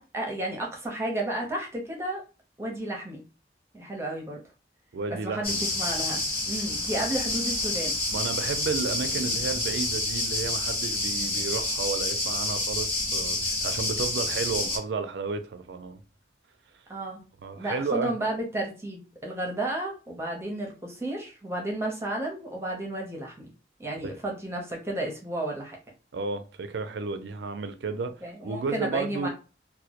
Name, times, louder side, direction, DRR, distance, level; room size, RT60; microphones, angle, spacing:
voice 1, 0.0-2.2 2.6-3.2 3.7-4.4 5.2-8.0 11.1-11.5 16.9-17.2 17.6-23.5 23.8-25.8 28.2-29.3, right 1 dB, 15° right, 0.6 m, -32 dB
voice 2, 4.9-5.6 6.1-6.3 8.1-16.0 17.4-18.1 24.0-24.1 26.1-29.3, right 4 dB, 85° right, 0.4 m, -32 dB
sound 1, 5.4-14.8, left 2 dB, 30° left, 0.9 m, -28 dB
2.1 x 2.0 x 2.8 m
head